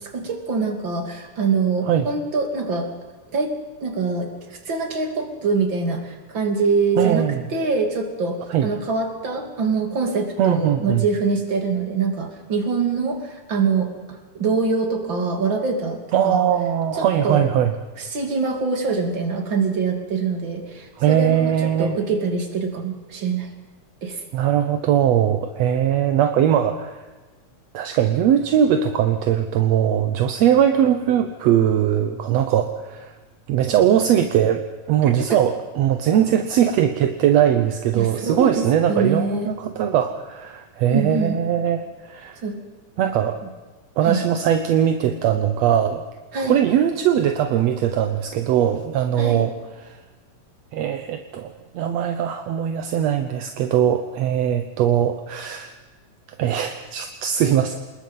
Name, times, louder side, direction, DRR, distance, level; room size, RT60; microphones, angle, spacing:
voice 1, 0.0-2.9 3.3-3.5 3.8-16.4 16.9-17.4 18.0-23.5 24.0-24.2 35.0-35.1 37.9-39.5 40.9-41.4 42.4-42.5 44.0-44.2 46.3-46.6 49.2-49.4, right 4 dB, 35° right, 4 dB, 3.2 m, -24 dB
voice 2, 7.0-7.4 8.5-8.7 10.4-11.0 16.1-17.7 21.0-22.0 24.3-27.0 27.7-33.1 33.5-42.4 43.0-43.4 44.0-46.0 46.4-49.5 49.9-50.0 50.7-55.7 56.4-57.8, right 10 dB, 65° right, 8 dB, 1.8 m, -20 dB
26.5 x 21.0 x 5.6 m, 1.3 s
omnidirectional pair, 3.8 m